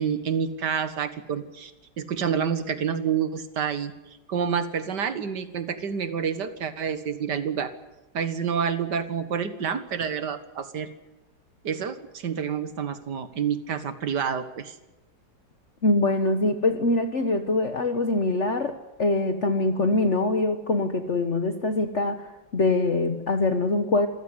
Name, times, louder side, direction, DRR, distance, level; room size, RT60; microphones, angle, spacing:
voice 1, 0.0-1.7 2.0-3.9 4.3-7.7 8.1-10.9 11.6-14.8, right 7 dB, 65° right, 11 dB, 2.1 m, -28 dB
voice 2, 15.8-22.3 22.5-24.1, left 2 dB, 45° left, 7 dB, 1.5 m, -24 dB
26.5 x 15.5 x 9.8 m, 1.0 s
omnidirectional pair, 2.0 m